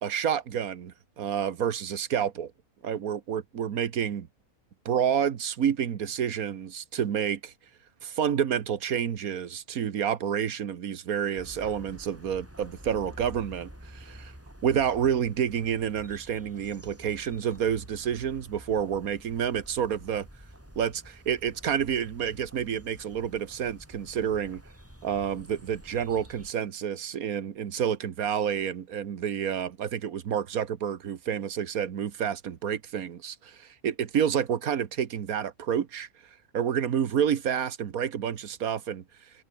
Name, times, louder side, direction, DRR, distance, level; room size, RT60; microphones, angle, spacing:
voice 1, 0.0-2.5 2.8-4.3 4.8-7.5 8.0-14.3 14.6-20.3 20.8-24.6 25.0-36.1 36.5-39.0, right 8 dB, 80° right, 1.6 m, -29 dB
sound 1, 11.4-26.5, equal, 10° right, 6.4 m, -49 dB
omnidirectional pair, 1.5 m